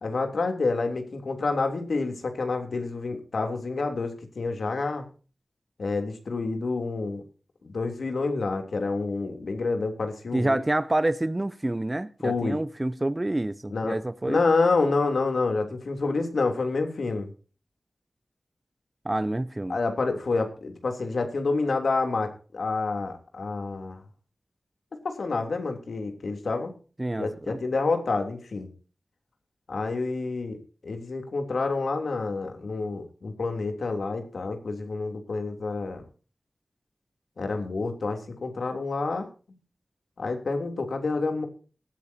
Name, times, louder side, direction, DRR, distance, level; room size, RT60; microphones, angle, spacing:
voice 1, 0.0-5.1 5.8-7.2 7.6-10.6 12.2-12.6 13.7-14.0 14.2-17.3 19.7-24.0 25.0-26.7 27.2-28.7 29.7-30.6 30.8-36.0 37.4-39.2 40.2-41.5, left 3 dB, 85° left, 3.2 m, -28 dB
voice 2, 10.3-14.4 19.0-19.8 27.0-27.6, right 1 dB, 25° right, 0.8 m, -27 dB
19.0 x 14.0 x 2.9 m
wide cardioid pair, 70°, 0 cm